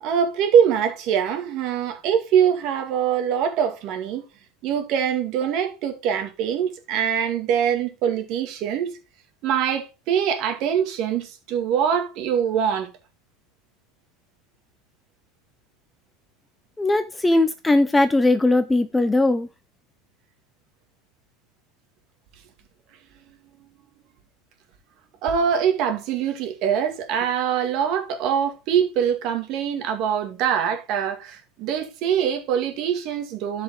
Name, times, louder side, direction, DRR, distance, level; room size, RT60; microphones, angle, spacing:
voice 1, 0.0-4.2 4.6-9.0 9.4-12.9 25.2-33.6, right 8 dB, 45° right, 2.0 m, -23 dB
voice 2, 16.8-19.5, left 2 dB, 5° left, 0.5 m, -19 dB
12.5 x 5.2 x 3.7 m
supercardioid pair, 160°, 0 cm